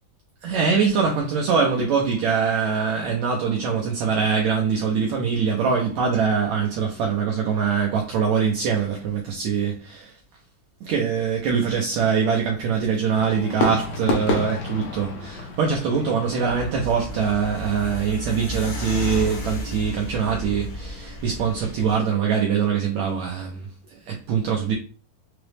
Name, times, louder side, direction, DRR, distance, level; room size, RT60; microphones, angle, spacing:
voice 1, 0.4-10.1 10.8-24.7, right 6 dB, 85° right, 1.6 m, -23 dB
Fireworks, 13.1-18.1, left 2 dB, 70° left, 1.8 m, -30 dB
sound 1, 16.4-21.9, equal, 55° left, 1.0 m, -33 dB
5.6 x 2.0 x 3.2 m
omnidirectional pair, 3.9 m